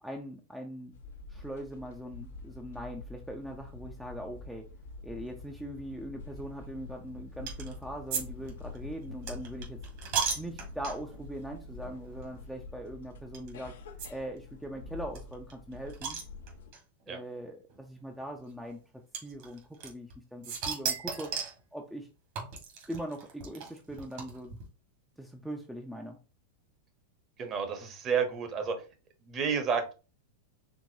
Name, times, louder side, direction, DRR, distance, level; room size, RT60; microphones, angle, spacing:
voice 1, 0.0-0.9 1.3-4.7 5.0-9.8 10.4-13.7 14.1-16.2 17.1-18.8 19.2-21.3 21.7-22.1 22.9-24.5 25.2-26.2, right 1 dB, ahead, 1 dB, 0.5 m, -41 dB
sound 1, 0.9-16.7, left 3 dB, 85° left, 0.9 m, -46 dB
sound 2, 7.5-7.7 8.1-8.2 8.5-11.2 11.8-12.0 12.2-12.3 13.3-13.5 14.0-14.1 14.4-14.5 14.6-14.7 15.1-16.8 17.7-17.8 19.1-20.1 20.4-21.6 22.4-24.6, right 6 dB, 55° right, 1.8 m, -35 dB
voice 2, 27.4-28.8 29.3-29.9, right 6 dB, 30° right, 7 dB, 1.0 m, -30 dB
4.7 x 3.4 x 2.7 m, 0.33 s
supercardioid pair, 145°, 0 cm